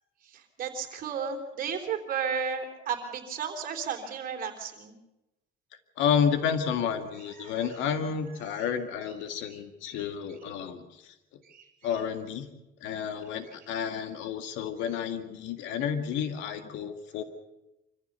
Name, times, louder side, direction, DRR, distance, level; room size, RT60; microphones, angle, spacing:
voice 1, 0.2-4.9 7.3-7.7 8.5-8.7 9.5-9.6 9.9-10.0 11.4-11.7, right 6 dB, 45° right, 5 dB, 3.6 m, -34 dB
voice 2, 6.0-11.1 11.8-12.5 12.8-17.2, left 7 dB, 75° left, 8 dB, 2.0 m, -30 dB
25.5 x 15.0 x 6.9 m, 0.95 s
cardioid pair, 130°, 20 cm